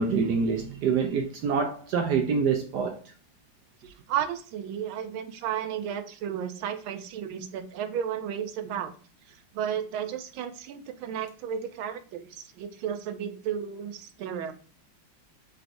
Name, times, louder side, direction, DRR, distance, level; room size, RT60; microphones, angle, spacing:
voice 1, 0.0-3.0, right 5 dB, 75° right, 1.0 m, -26 dB
voice 2, 3.8-8.9 9.5-14.5, right 9 dB, 90° right, 1.4 m, -33 dB
4.0 x 2.5 x 4.5 m
omnidirectional pair, 2.2 m